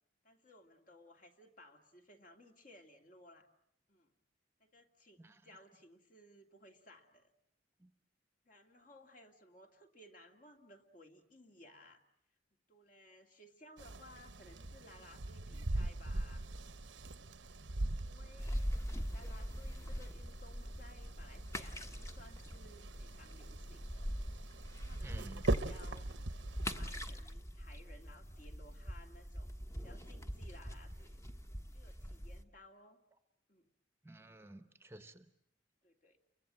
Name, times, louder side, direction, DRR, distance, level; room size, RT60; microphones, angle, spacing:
voice 1, 0.2-3.5 3.9-4.1 4.6-7.3 8.4-12.0 12.7-16.4 18.0-18.7 19.1-24.1 24.7-26.1 26.8-31.2 31.7-33.0 33.5-33.7 35.8-36.2, left 1 dB, 45° left, 4 dB, 2.4 m, -60 dB
voice 2, 5.2-5.6 7.8-7.9 25.0-25.4 34.0-35.3, right 1 dB, 15° right, 10 dB, 1.0 m, -53 dB
sound 1, 13.8-27.0, right 2 dB, 80° right, 1.0 m, -42 dB
sound 2, 18.4-32.4, equal, 15° left, 1.2 m, -43 dB
29.5 x 23.5 x 7.7 m, 0.71 s
head